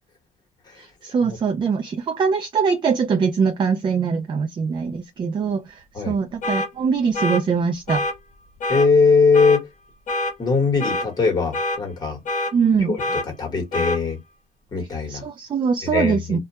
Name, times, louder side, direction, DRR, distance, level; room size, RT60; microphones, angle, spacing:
voice 1, 0.8-8.0 12.5-13.0 14.8-16.4, right 6 dB, 30° right, 0.4 m, -22 dB
sound 1, 6.4-6.7 7.1-7.4 7.9-8.1 8.6-8.9 9.3-9.6 10.1-10.3 10.8-11.1 11.5-11.8 12.3-12.5 13.0-13.3 13.7-14.0, left 2 dB, 50° left, 0.9 m, -25 dB
voice 2, 8.7-9.7 10.4-12.2 12.9-13.0 13.4-14.2 14.7-15.2 15.8-16.4, left 4 dB, 25° left, 1.0 m, -20 dB
2.2 x 2.1 x 2.8 m
cardioid pair, 110°, 17 cm